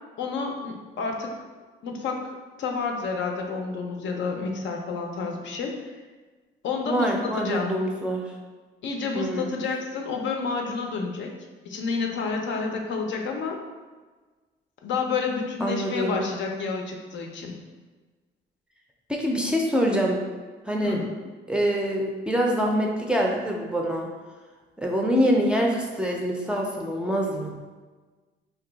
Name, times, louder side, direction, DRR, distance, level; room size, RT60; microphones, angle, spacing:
voice 1, 0.2-1.3 1.8-2.2 2.6-5.9 6.6-7.7 8.8-11.3 11.7-13.6 14.8-17.6 20.8-21.0, left 4 dB, 70° left, 2 dB, 0.5 m, -29 dB
voice 2, 6.9-8.3 9.1-9.5 15.6-16.2 19.1-20.2 20.7-21.0 21.5-24.1 24.8-27.5, equal, 5° right, -1 dB, 0.4 m, -25 dB
2.6 x 2.2 x 3.9 m, 1.3 s
cardioid pair, 90°, 20 cm